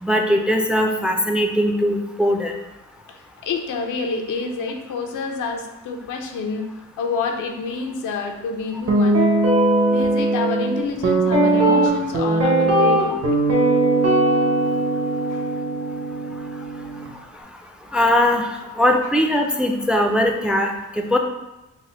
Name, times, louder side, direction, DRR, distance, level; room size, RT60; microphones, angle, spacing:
voice 1, 0.0-2.5 17.9-18.5 18.8-21.2, left 1 dB, 5° right, 3 dB, 0.4 m, -20 dB
voice 2, 3.1-6.7 7.0-9.3 9.9-13.4 15.3-15.5, left 4 dB, 80° left, 3 dB, 0.6 m, -28 dB
Guitar, 8.9-17.1, right 2 dB, 55° right, 1.0 m, -19 dB
4.0 x 2.1 x 4.2 m, 0.97 s
cardioid pair, 85°, 30 cm